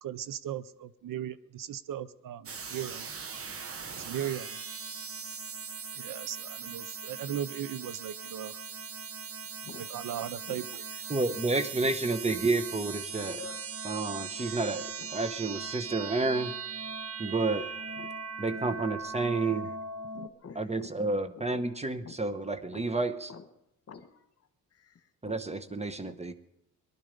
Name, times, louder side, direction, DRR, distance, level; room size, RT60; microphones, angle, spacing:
voice 1, 0.0-3.1 3.4-3.5 3.9-4.6 5.9-8.6 9.8-10.8, right 10 dB, 65° right, 15 dB, 0.7 m, -37 dB
sound 1, 2.5-20.3, right 5 dB, 40° right, 1.1 m, -39 dB
voice 2, 9.6-10.6 10.9-11.0 13.3-13.6 14.4-14.6 15.0-15.1 17.4-17.7 18.0-18.1 19.4-19.6 20.1-20.9 21.3-21.4 22.0-22.2 22.7-22.8 23.3-23.4 23.9-24.3 24.7-25.4 26.0-26.1, left 6 dB, 40° left, 8 dB, 1.7 m, -49 dB
voice 3, 11.1-13.4 13.8-16.6 17.2-17.7 18.4-19.7 20.5-23.3 25.2-26.3, right 3 dB, 20° right, 9 dB, 1.0 m, -30 dB
19.0 x 12.0 x 5.2 m, 0.83 s
cardioid pair, 90°, 36 cm